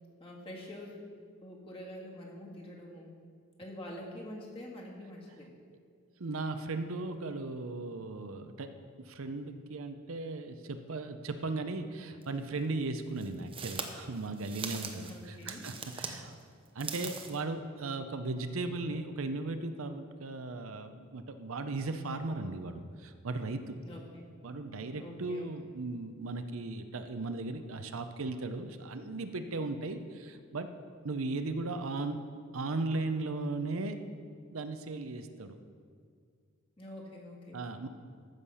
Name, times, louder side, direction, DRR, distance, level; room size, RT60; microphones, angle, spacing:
voice 1, 0.2-1.1 1.4-3.1 3.6-5.5 15.1-15.7 23.8-24.3 25.0-25.5 36.8-37.6, left 1 dB, 25° left, -2 dB, 1.9 m, -46 dB
voice 2, 6.2-8.7 9.0-16.4 16.7-23.8 24.4-30.7 31.0-32.2 32.5-34.0 34.5-35.6 37.5-37.9, right 3 dB, 80° right, 8 dB, 0.7 m, -37 dB
sound 1, 12.2-12.3 13.2-16.2 16.7-17.4, right 5 dB, 25° right, 0.8 m, -41 dB
14.5 x 6.6 x 5.6 m, 2.1 s
head